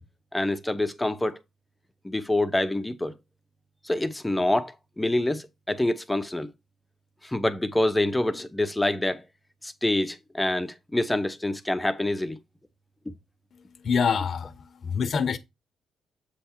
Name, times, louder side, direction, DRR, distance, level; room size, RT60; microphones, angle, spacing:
voice 1, 0.3-1.4 2.0-3.1 3.8-6.5 7.2-9.2 9.6-12.4, left 1 dB, 10° left, 0.8 m, -26 dB
voice 2, 13.5-15.4, left 6 dB, 50° left, 0.8 m, -26 dB
7.5 x 3.4 x 4.4 m
cardioid pair, 90°, 0 cm